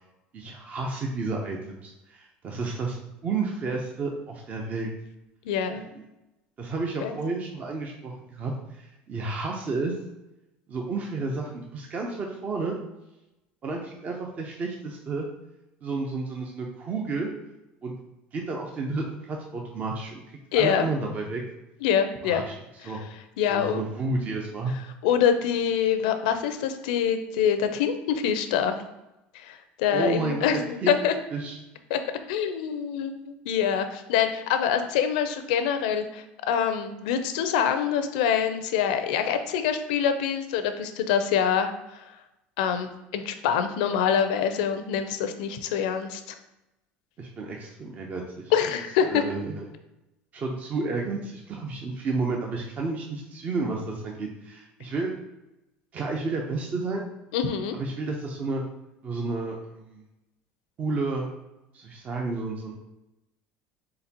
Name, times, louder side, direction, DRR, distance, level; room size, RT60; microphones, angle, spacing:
voice 1, 0.3-4.9 5.9-6.0 6.6-9.9 10.7-12.8 13.6-15.3 15.8-17.3 17.8-17.9 18.3-20.2 20.5-21.4 22.2-22.5 22.8-23.0 23.5-24.7 29.9-30.5 30.8-31.0 31.3-31.6 47.2-48.5 49.0-49.7 50.3-55.1 55.9-57.0 57.7-58.6 59.0-60.0 60.8-61.3 61.7-62.7, right 3 dB, 40° right, 0 dB, 0.6 m, -31 dB
voice 2, 5.4-5.8 7.0-7.1 20.5-20.9 21.8-22.4 23.4-23.8 25.0-28.8 29.3-31.1 31.9-32.0 32.3-42.0 42.6-46.4 48.5-49.2 57.3-57.8, left 8 dB, 85° left, 8 dB, 0.4 m, -25 dB
3.9 x 3.9 x 2.8 m, 0.94 s
supercardioid pair, 110°, 4 cm